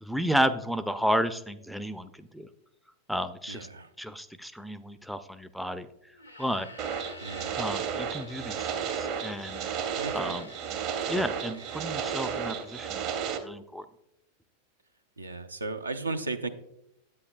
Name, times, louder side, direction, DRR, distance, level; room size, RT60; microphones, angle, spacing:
voice 1, 0.0-2.5 3.1-3.7 4.0-5.9 6.4-6.7 7.6-8.7 9.0-9.6 10.1-10.5 11.1-13.1 13.4-13.9, equal, ahead, 12 dB, 0.4 m, -32 dB
voice 2, 3.5-3.9 7.2-7.5 10.0-10.4 11.1-11.2 11.7-11.9 15.2-16.5, right 3 dB, 80° right, 8 dB, 0.5 m, -35 dB
sound 1, 6.1-13.4, left 2 dB, 90° left, 0.8 m, -50 dB
sound 2, 6.8-13.4, right 7 dB, 40° right, 0.7 m, -33 dB
9.7 x 8.2 x 2.2 m, 0.81 s
figure-of-eight pair, 90°, 0 cm